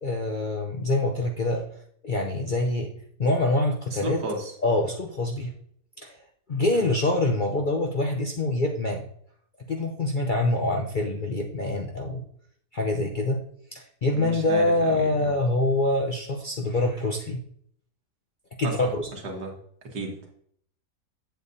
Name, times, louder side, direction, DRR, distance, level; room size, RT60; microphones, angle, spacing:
voice 1, 0.0-1.6 2.0-2.9 3.2-4.2 4.6-5.5 6.0-6.2 6.5-9.0 9.7-12.2 12.7-13.4 13.7-17.4 18.6-19.1, left 2 dB, 50° left, 1 dB, 0.6 m, -25 dB
voice 2, 3.9-4.5 6.7-6.8 14.1-15.3 18.6-18.7 19.2-19.5 19.9-20.3, right 2 dB, 80° right, 1 dB, 2.1 m, -34 dB
8.2 x 8.1 x 2.7 m, 0.65 s
omnidirectional pair, 1.7 m